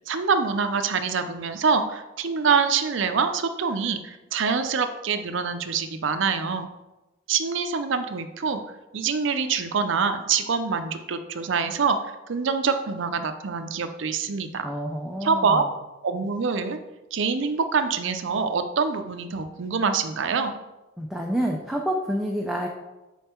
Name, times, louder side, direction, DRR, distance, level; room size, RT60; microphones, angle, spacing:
voice 1, 0.1-6.7 7.3-8.6 8.9-12.0 12.3-14.7 15.2-15.6 16.0-16.8 17.1-20.5, right 5 dB, 65° right, 8 dB, 0.5 m, -25 dB
voice 2, 14.6-15.7 21.0-22.7, equal, ahead, -1 dB, 0.5 m, -28 dB
5.4 x 4.6 x 4.4 m, 1.0 s
head